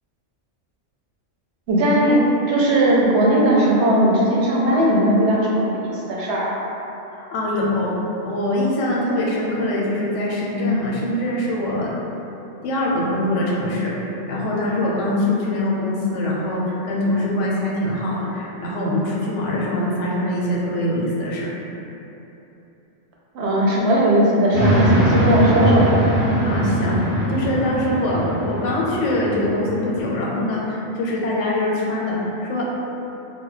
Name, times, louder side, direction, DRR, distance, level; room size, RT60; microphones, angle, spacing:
voice 1, 1.7-6.5 23.3-25.9, right 1 dB, 70° right, -4 dB, 0.8 m, -18 dB
voice 2, 7.1-7.9 8.2-11.9 12.6-21.5 26.4-32.7, left 1 dB, 90° left, -4 dB, 0.9 m, -23 dB
sound 1, 24.5-30.0, right 1 dB, 25° right, 0.8 m, -21 dB
2.2 x 2.1 x 3.8 m, 3.0 s
omnidirectional pair, 1.2 m